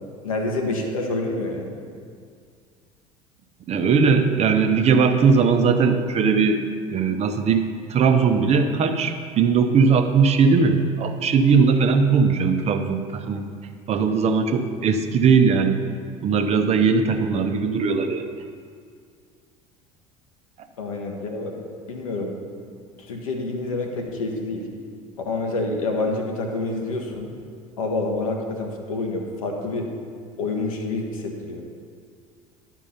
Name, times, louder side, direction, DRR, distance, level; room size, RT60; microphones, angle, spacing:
voice 1, 0.2-1.7 20.8-22.3 23.1-24.7 25.2-27.3 27.8-29.9 30.4-31.6, left 2 dB, 75° left, 1 dB, 1.2 m, -27 dB
voice 2, 3.7-6.6 6.9-13.5 13.9-15.8 16.2-18.2, right 5 dB, 35° right, 7 dB, 0.7 m, -19 dB
11.0 x 4.6 x 5.6 m, 2.2 s
figure-of-eight pair, 65°, 18 cm